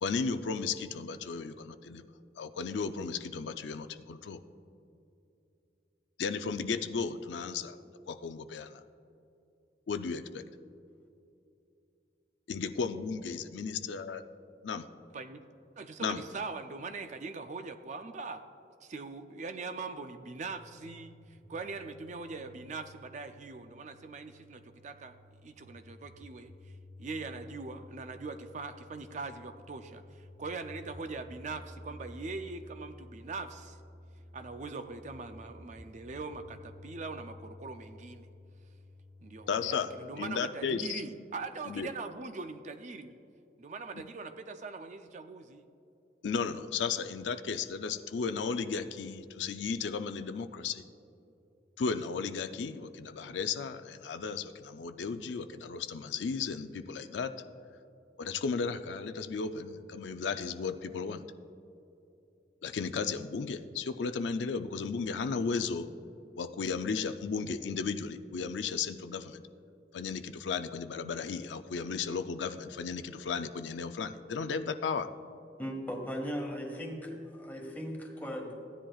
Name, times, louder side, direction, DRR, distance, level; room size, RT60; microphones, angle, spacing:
voice 1, 0.0-2.0 2.4-4.4 6.2-7.8 8.1-8.8 9.9-10.4 12.5-14.2 14.6-14.9 16.0-16.2 39.5-39.9 40.2-41.0 41.7-41.9 46.2-50.8 51.8-57.4 58.2-61.3 62.6-65.9 66.4-69.4 69.9-75.1, left 5 dB, 85° left, 9 dB, 0.4 m, -34 dB
voice 2, 15.1-15.4 15.8-18.5 18.8-25.2 25.4-33.8 34.3-38.3 39.2-43.2 43.6-45.6, right 4 dB, 45° right, 8 dB, 0.4 m, -42 dB
sound 1, 20.4-39.5, left 1 dB, 10° right, 1.6 m, -53 dB
voice 3, 75.6-78.5, equal, 10° left, 0 dB, 1.5 m, -38 dB
15.5 x 10.0 x 2.4 m, 2.7 s
head